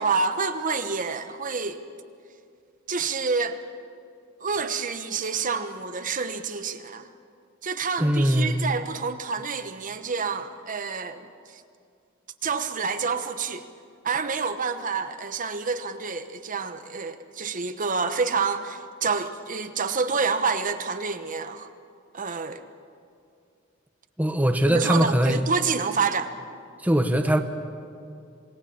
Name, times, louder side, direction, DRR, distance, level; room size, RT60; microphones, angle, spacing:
voice 1, 0.0-1.8 2.9-3.6 4.4-7.1 7.6-11.6 12.4-13.6 14.0-21.7 22.1-22.6 24.7-26.3, right 5 dB, 40° right, 9 dB, 1.1 m, -28 dB
voice 2, 8.0-8.6 24.2-25.4 26.8-27.4, equal, 10° right, 6 dB, 1.1 m, -21 dB
27.5 x 18.5 x 8.7 m, 2.4 s
head